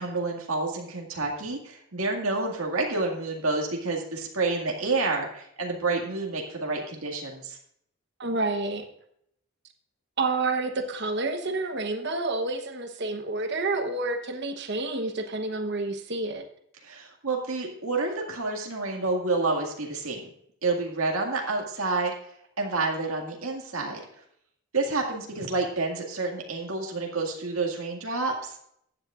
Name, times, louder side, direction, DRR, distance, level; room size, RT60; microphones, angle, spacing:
voice 1, 0.0-7.6 16.8-20.2 20.6-22.1 22.6-24.0 24.7-28.6, right 3 dB, 85° right, 0 dB, 2.0 m, -29 dB
voice 2, 8.2-8.9 10.2-16.4, right 3 dB, 55° right, 6 dB, 1.0 m, -29 dB
15.0 x 9.7 x 2.5 m, 0.70 s
head